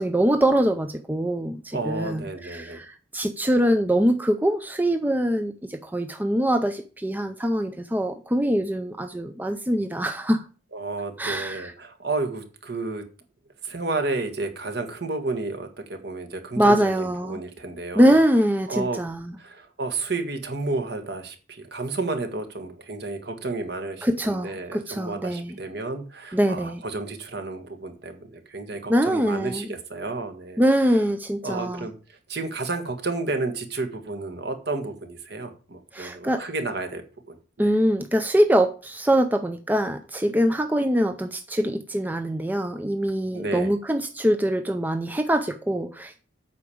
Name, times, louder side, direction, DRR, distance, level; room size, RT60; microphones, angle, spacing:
voice 1, 0.0-10.4 11.2-11.7 16.6-17.4 18.0-19.3 24.0-25.6 26.3-26.8 28.9-29.7 30.6-31.8 35.9-36.4 37.6-46.2, equal, 10° right, 0.5 m, -23 dB
voice 2, 1.7-2.8 10.7-13.0 13.6-18.2 18.7-19.0 19.4-31.0 31.4-37.7 43.3-43.7, right 3 dB, 55° right, 1.6 m, -31 dB
8.4 x 4.9 x 7.0 m
head